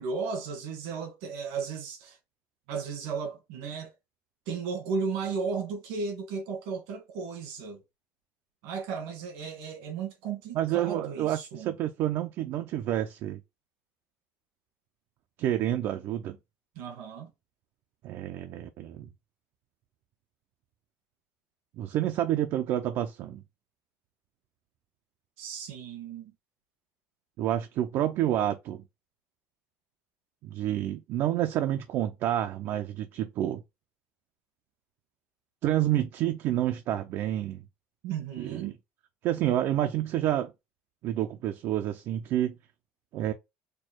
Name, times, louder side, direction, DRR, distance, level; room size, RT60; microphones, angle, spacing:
voice 1, 0.0-2.2 2.7-3.9 4.5-7.8 8.6-11.7 16.8-17.3 25.4-26.3 38.0-38.7, right 5 dB, 85° right, 1.8 m, -35 dB
voice 2, 10.5-13.4 15.4-16.4 18.0-19.1 21.8-23.4 27.4-28.8 30.4-33.6 35.6-37.6 38.4-38.7 39.2-40.5 41.0-42.5 43.1-43.3, right 12 dB, 55° right, 0.5 m, -29 dB
4.4 x 2.3 x 4.4 m
cardioid pair, 130°, 5 cm